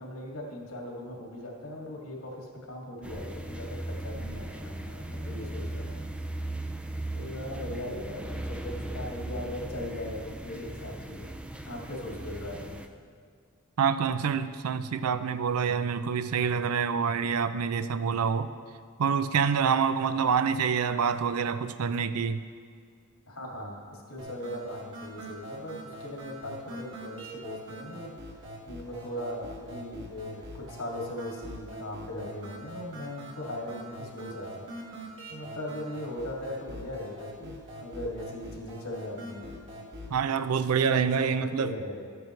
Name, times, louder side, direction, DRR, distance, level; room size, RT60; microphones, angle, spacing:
voice 1, 0.0-6.0 7.1-11.3 11.6-12.8 23.3-28.1 28.7-39.6 40.9-42.2, left 1 dB, 80° left, -2 dB, 2.2 m, -39 dB
sound 1, 3.0-12.9, right 1 dB, 5° right, 0.4 m, -37 dB
voice 2, 13.8-18.5 19.0-22.4 40.1-41.7, right 6 dB, 80° right, 12 dB, 0.5 m, -26 dB
sound 2, 24.2-40.2, equal, 55° right, 1.8 m, -43 dB
13.5 x 9.1 x 3.2 m, 2.2 s
head